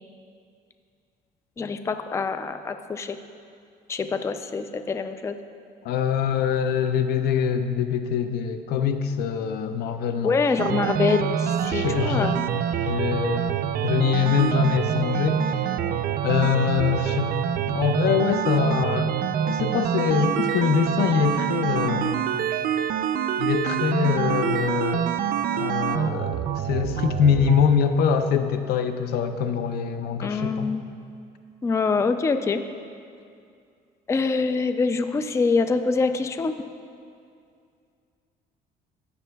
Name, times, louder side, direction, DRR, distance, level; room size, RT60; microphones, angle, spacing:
voice 1, 1.6-3.2 3.9-5.4 10.2-12.4 30.2-30.8 31.6-32.6 34.1-36.5, left 4 dB, 15° left, 9 dB, 0.3 m, -25 dB
voice 2, 5.8-10.3 11.6-12.3 12.8-13.6 13.8-15.5 16.2-17.3 17.7-19.1 19.5-22.2 23.4-25.1 25.6-30.7, left 7 dB, 70° left, 9 dB, 0.5 m, -24 dB
sound 1, 10.6-27.6, right 9 dB, 65° right, 0.4 m, -26 dB
16.0 x 7.0 x 2.3 m, 2.4 s
cardioid pair, 110°, 17 cm